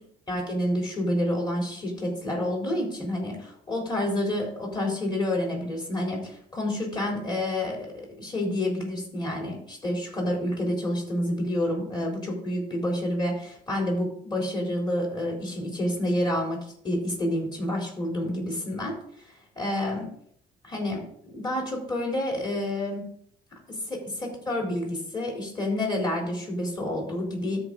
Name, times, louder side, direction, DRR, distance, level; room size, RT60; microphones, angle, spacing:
voice 1, 0.3-20.1 20.6-23.1 24.2-27.6, left 1 dB, 25° left, -1 dB, 4.0 m, -29 dB
13.0 x 5.0 x 4.1 m, 0.66 s
cardioid pair, 110°, 17 cm